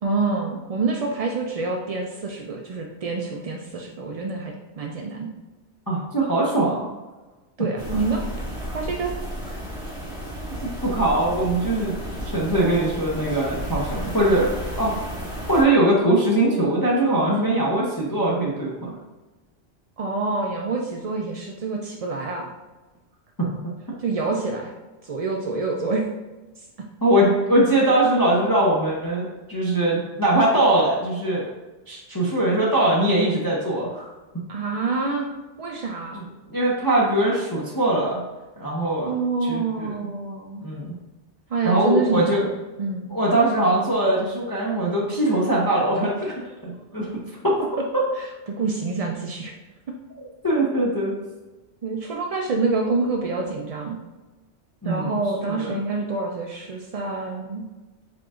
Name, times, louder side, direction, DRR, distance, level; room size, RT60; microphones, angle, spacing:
voice 1, 0.0-5.3 7.6-8.2 8.7-9.1 9.5-9.6 12.5-13.0 20.0-22.5 24.0-24.7 25.0-26.0 34.5-35.3 35.6-36.2 39.0-40.7 41.5-43.1 48.2-49.5 51.8-54.0 54.8-57.6, right 3 dB, 65° right, 1 dB, 0.3 m, -27 dB
voice 2, 5.9-6.9 10.6-11.9 12.3-14.5 14.8-14.9 15.5-19.0 27.0-31.4 31.9-34.1 36.1-36.2 36.5-38.2 38.6-39.1 39.5-40.1 40.6-40.9 41.6-42.4 43.1-46.3 46.6-47.1 47.4-47.6 50.4-51.1 54.8-55.2 55.4-55.8, right 1 dB, 20° left, -5 dB, 0.7 m, -21 dB
sound 1, 7.8-15.6, equal, 5° right, 1.0 m, -32 dB
4.8 x 4.6 x 2.4 m, 1.2 s
omnidirectional pair, 1.2 m